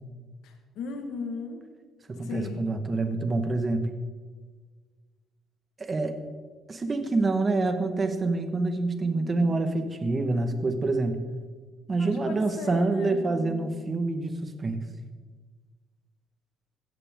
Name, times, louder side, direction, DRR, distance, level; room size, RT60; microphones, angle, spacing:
voice 1, 0.4-1.6 2.2-2.8 12.0-13.7, left 5 dB, 80° left, 5 dB, 1.7 m, -38 dB
voice 2, 2.1-3.9 5.8-6.2 6.7-11.2 11.9-14.8, right 3 dB, 25° right, 7 dB, 1.6 m, -27 dB
16.0 x 14.5 x 3.8 m, 1.4 s
cardioid pair, 120°, 0 cm